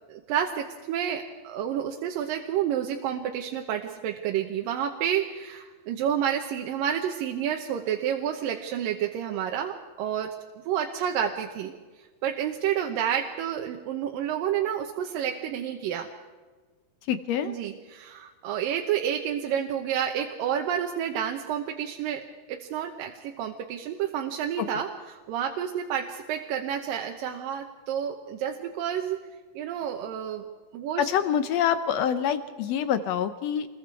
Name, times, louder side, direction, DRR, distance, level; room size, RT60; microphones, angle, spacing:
voice 1, 0.1-10.4 10.7-11.7 12.2-16.1 17.4-29.2 29.5-30.5 30.7-31.1, right 9 dB, 85° right, 3 dB, 2.7 m, -30 dB
voice 2, 17.1-17.6 24.6-24.7 31.0-33.7, left 9 dB, 75° left, 11 dB, 1.5 m, -26 dB
27.0 x 21.5 x 4.7 m, 1.4 s
omnidirectional pair, 3.9 m